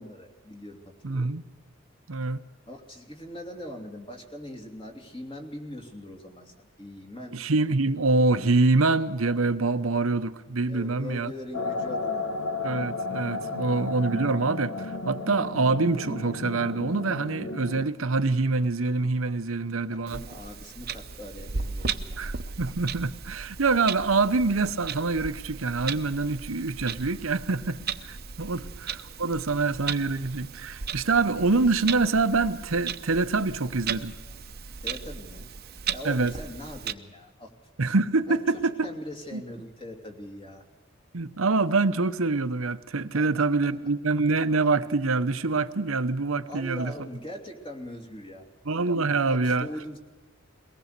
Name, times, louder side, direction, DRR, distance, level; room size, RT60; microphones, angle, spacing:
voice 1, 0.0-1.3 2.7-7.4 10.7-12.3 19.9-22.2 28.5-28.7 34.8-35.5 35.9-37.5 38.3-40.6 43.1-43.4 43.8-43.9 46.5-48.5 49.2-50.0, left 1 dB, 25° left, 2.8 m, -41 dB
voice 2, 1.0-1.4 2.1-2.4 7.3-11.3 12.6-20.2 22.2-34.1 36.0-36.3 37.8-38.9 39.3-39.4 41.1-46.9 48.7-49.7, right 3 dB, 85° right, 0.9 m, -25 dB
sound 1, 11.5-17.9, left 3 dB, 90° left, 1.2 m, -33 dB
Clock, 20.1-36.9, right 6 dB, 50° right, 0.9 m, -36 dB
22.5 x 18.5 x 6.8 m
head